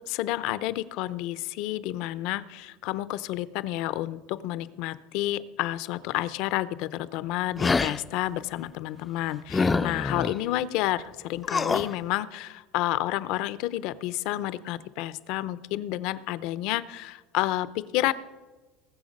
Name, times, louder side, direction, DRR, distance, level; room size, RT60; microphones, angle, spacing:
voice 1, 0.0-18.1, left 15 dB, 60° left, 16 dB, 0.6 m, -30 dB
sound 1, 7.6-8.0 9.5-10.3 11.4-11.9, left 4 dB, 15° left, 0.4 m, -25 dB
20.0 x 7.2 x 5.3 m, 1.3 s
cardioid pair, 145°, 0 cm